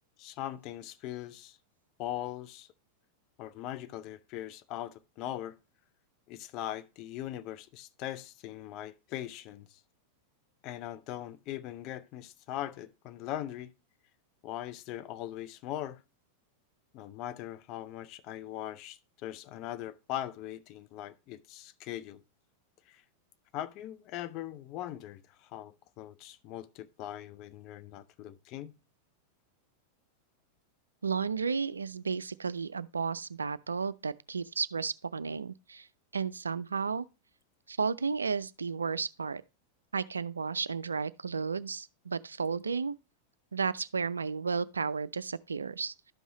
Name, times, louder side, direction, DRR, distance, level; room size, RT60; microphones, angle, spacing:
voice 1, 0.2-1.6 2.0-2.7 3.4-5.6 6.3-9.8 10.6-13.7 14.4-16.0 16.9-22.2 22.9-23.0 23.5-28.7, left 12 dB, 40° left, 0.5 m, -40 dB
voice 2, 31.0-35.9 36.1-37.0 37.7-39.4 39.9-42.9 43.5-46.1, right 5 dB, 75° right, 0.3 m, -33 dB
12.0 x 5.4 x 2.9 m
figure-of-eight pair, 90°, 0 cm